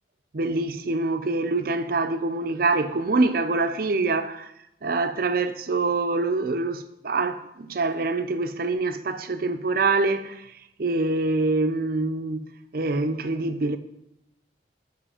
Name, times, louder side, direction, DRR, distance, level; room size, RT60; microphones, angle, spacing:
voice 1, 0.3-4.5 4.8-10.5 10.8-12.5 12.7-13.8, right 3 dB, 50° right, 0.6 m, -25 dB
7.6 x 5.6 x 4.9 m
head